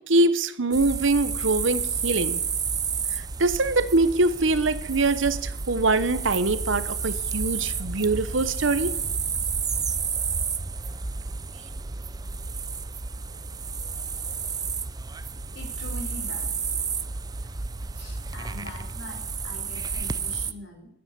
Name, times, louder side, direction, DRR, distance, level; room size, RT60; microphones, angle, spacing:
voice 1, 0.1-2.4 3.4-8.9, right 2 dB, 90° right, 13 dB, 1.1 m, -23 dB
sound 1, 0.7-20.5, right 5 dB, 20° right, 0.6 m, -31 dB
voice 2, 15.5-16.7 17.9-20.9, left 1 dB, 70° left, 2 dB, 4.8 m, -43 dB
13.0 x 9.2 x 8.3 m, 0.83 s
head